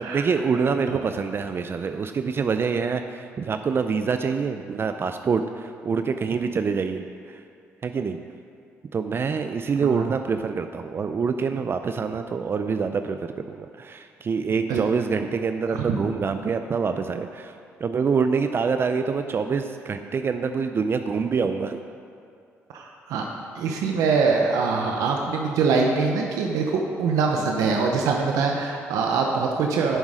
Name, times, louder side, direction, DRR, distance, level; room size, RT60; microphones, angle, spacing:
voice 1, 0.0-7.4 7.8-8.2 8.9-17.5 17.8-21.8, right 5 dB, 45° right, 8 dB, 0.5 m, -26 dB
voice 2, 22.7-23.2 23.6-30.0, right 4 dB, 80° right, 1 dB, 0.8 m, -23 dB
10.0 x 7.2 x 5.0 m, 2.4 s
supercardioid pair, 60°, 6 cm